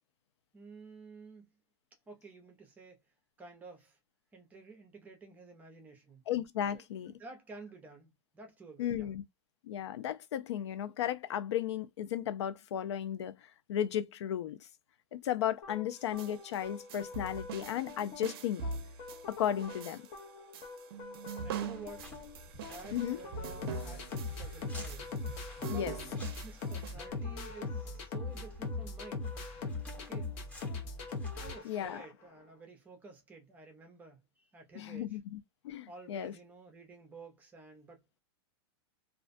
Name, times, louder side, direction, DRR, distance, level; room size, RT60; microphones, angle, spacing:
voice 1, 0.5-1.5 2.1-3.0 3.4-4.0 4.3-6.2 6.6-9.1 21.4-22.1 22.6-25.2 25.6-26.0 26.4-29.3 30.0-30.3 31.3-35.2 35.9-38.2, right 3 dB, 10° right, 0.6 m, -51 dB
voice 2, 6.3-7.1 8.8-9.2 9.6-13.4 13.7-14.6 15.1-18.6 19.3-20.1 22.9-23.2 25.7-25.9 31.6-32.0 34.7-35.4 35.6-36.3, left 10 dB, 85° left, 0.5 m, -34 dB
sound 1, 15.6-32.3, left 3 dB, 35° left, 0.6 m, -41 dB
sound 2, 16.0-26.9, right 6 dB, 60° right, 0.5 m, -44 dB
sound 3, 21.7-31.6, equal, 10° left, 0.9 m, -52 dB
2.4 x 2.1 x 2.5 m
supercardioid pair, 160°, 14 cm